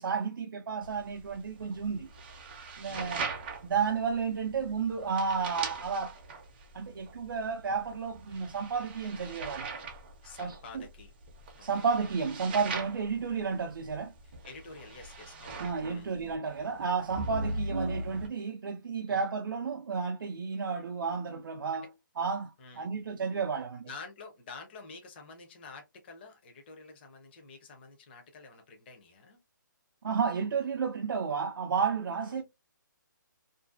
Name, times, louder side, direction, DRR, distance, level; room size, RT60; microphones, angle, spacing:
voice 1, 0.0-2.1 2.8-3.3 3.6-6.2 6.7-9.7 10.4-10.8 11.6-14.1 15.6-21.9 22.2-23.9 30.0-32.4, right 5 dB, 85° right, 0.4 m, -32 dB
sound 1, 0.8-18.3, right 3 dB, 30° right, 0.5 m, -41 dB
voice 2, 2.9-3.2 10.2-11.1 11.6-12.2 14.2-16.2 19.1-19.3 21.7-21.8 22.6-22.9 23.8-29.4 32.2-32.4, left 4 dB, 30° left, 0.5 m, -49 dB
2.5 x 2.2 x 2.3 m
hypercardioid pair, 165°, 11 cm